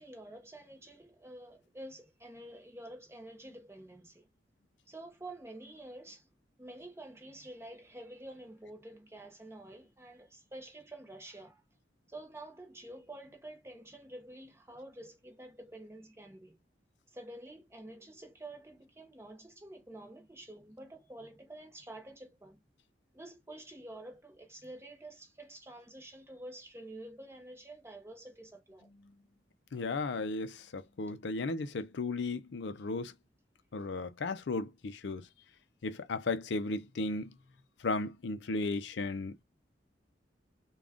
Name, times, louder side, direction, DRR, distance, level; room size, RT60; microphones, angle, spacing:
voice 1, 0.0-4.3 4.9-6.3 6.6-11.6 12.1-16.6 17.1-22.6 23.1-28.9, right 1 dB, 15° right, 0.9 m, -49 dB
voice 2, 29.7-33.1 33.7-35.3 35.8-37.3 37.8-39.4, left 3 dB, 65° left, 0.5 m, -35 dB
3.6 x 2.3 x 3.5 m
head